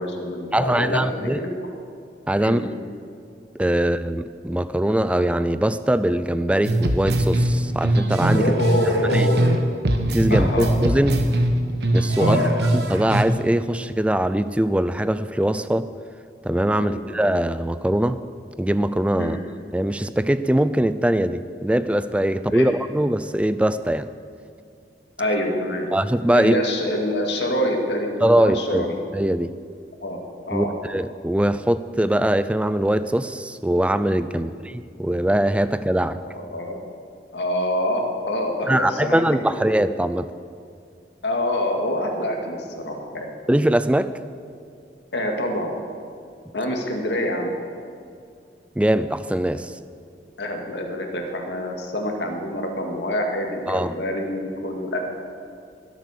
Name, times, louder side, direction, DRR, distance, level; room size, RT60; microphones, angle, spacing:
voice 1, 0.0-1.5 2.4-2.6 8.3-9.5 10.3-10.8 12.2-12.5 16.8-17.0 19.2-19.4 22.5-22.7 25.2-25.9 26.3-29.0 30.0-30.2 30.5-30.7 34.4-34.5 36.2-36.8 37.3-39.6 41.2-43.3 45.1-45.7 46.5-47.5 50.4-55.0, left 1 dB, 80° left, 2 dB, 2.2 m, -26 dB
voice 2, 0.5-1.4 2.3-2.6 3.6-8.5 9.1-9.3 10.1-11.2 11.9-15.9 16.4-18.2 18.6-19.4 19.7-24.1 25.9-26.6 28.2-28.9 29.1-29.5 30.5-36.2 38.7-40.3 43.5-44.1 48.8-49.8 53.7-53.9, right 1 dB, 5° right, 13 dB, 0.4 m, -22 dB
sound 1, 6.6-9.6 9.8-13.2, right 1 dB, 70° right, 1.3 m, -21 dB
21.5 x 8.2 x 6.6 m, 2.3 s
head